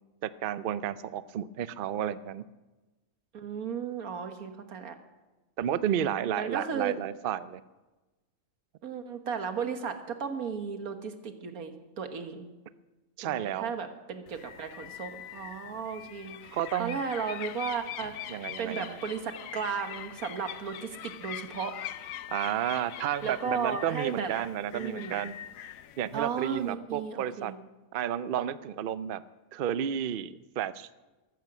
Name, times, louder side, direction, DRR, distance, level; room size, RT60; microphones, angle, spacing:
voice 1, 0.2-2.4 5.6-7.6 13.2-13.7 16.5-17.0 18.3-19.0 22.3-25.3 26.0-27.5 27.9-29.2 29.5-30.9, right 10 dB, 60° right, 15 dB, 0.5 m, -32 dB
voice 2, 3.3-5.0 5.9-6.9 8.8-12.5 13.2-21.7 23.2-24.3 24.7-25.2 26.1-27.6, right 6 dB, 85° right, 7 dB, 1.8 m, -35 dB
sound 1, 14.3-26.7, left 11 dB, 75° left, 1.1 m, -43 dB
14.0 x 14.0 x 6.1 m, 1.1 s
omnidirectional pair, 1.5 m